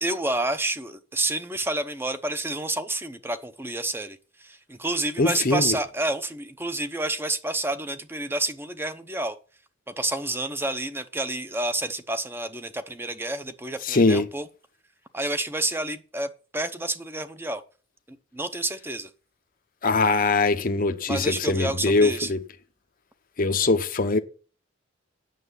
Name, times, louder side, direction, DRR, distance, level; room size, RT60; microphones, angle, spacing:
voice 1, 0.0-9.4 9.9-14.5 15.1-17.6 18.1-19.1 21.1-22.3, right 2 dB, 10° right, 0.8 m, -29 dB
voice 2, 5.2-5.7 13.8-14.3 19.8-22.4 23.4-24.2, left 3 dB, 40° left, 0.8 m, -22 dB
9.2 x 6.7 x 8.2 m
head